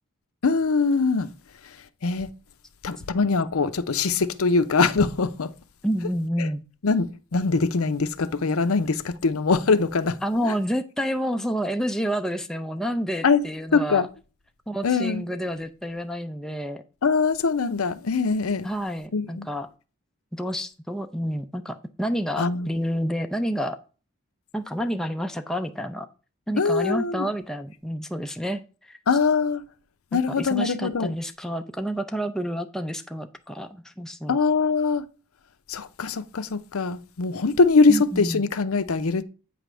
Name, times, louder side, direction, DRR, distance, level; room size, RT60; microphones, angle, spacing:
voice 1, 0.4-1.3 2.0-2.3 2.8-5.5 6.4-6.5 6.8-10.2 13.2-13.4 13.7-14.1 14.8-15.3 17.0-18.7 19.1-19.5 22.4-22.7 26.6-27.3 29.1-29.6 30.1-31.1 34.3-35.0 35.7-39.2, left 4 dB, 75° left, 0.6 m, -22 dB
voice 2, 5.8-6.6 10.2-14.1 14.7-16.8 18.6-19.7 20.3-23.8 24.5-26.1 26.5-28.6 28.9-29.0 30.1-34.4 37.9-38.5, equal, ahead, 0.5 m, -29 dB
8.4 x 3.4 x 6.1 m
head